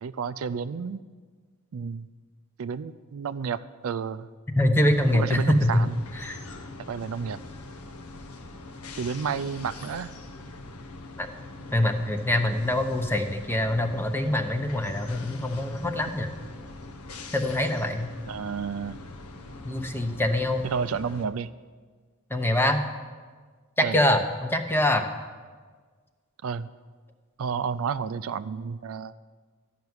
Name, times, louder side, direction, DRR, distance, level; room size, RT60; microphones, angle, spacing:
voice 1, 0.0-1.0 1.7-2.1 2.6-4.3 5.1-5.9 6.9-7.4 9.0-10.1 18.3-19.0 20.6-21.5 23.8-24.0 26.4-26.7 27.4-29.1, right 6 dB, 70° right, 13 dB, 0.4 m, -31 dB
voice 2, 4.6-5.8 6.2-6.4 11.2-11.3 11.7-16.3 17.3-18.1 19.6-20.7 22.3-22.8 23.8-25.0, left 1 dB, 10° left, 6 dB, 0.9 m, -24 dB
sound 1, 4.9-21.3, left 2 dB, 90° left, 1.0 m, -42 dB
13.5 x 5.9 x 9.5 m, 1.5 s
head